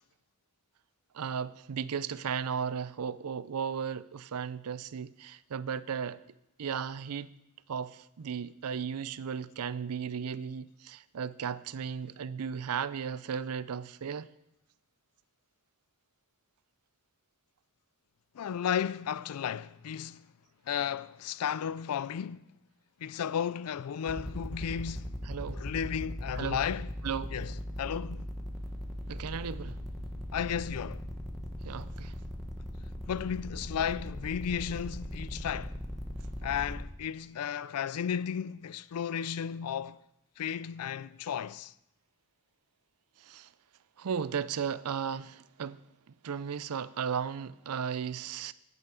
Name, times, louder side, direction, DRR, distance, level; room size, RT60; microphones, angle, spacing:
voice 1, 1.1-6.2 6.6-7.3 7.7-14.3 25.3-25.6 26.3-26.6 27.0-27.3 29.1-29.8 31.6-32.2 43.2-43.5 44.0-45.8 46.2-48.5, right 7 dB, 80° right, 0.5 m, -35 dB
voice 2, 18.3-20.3 20.7-22.4 23.0-25.2 25.5-26.9 27.3-28.2 30.3-31.0 33.1-35.8 36.4-40.0 40.4-41.7, left 8 dB, 85° left, 0.4 m, -34 dB
sound 1, 24.1-36.8, equal, ahead, 1.2 m, -39 dB
10.5 x 10.0 x 5.0 m
head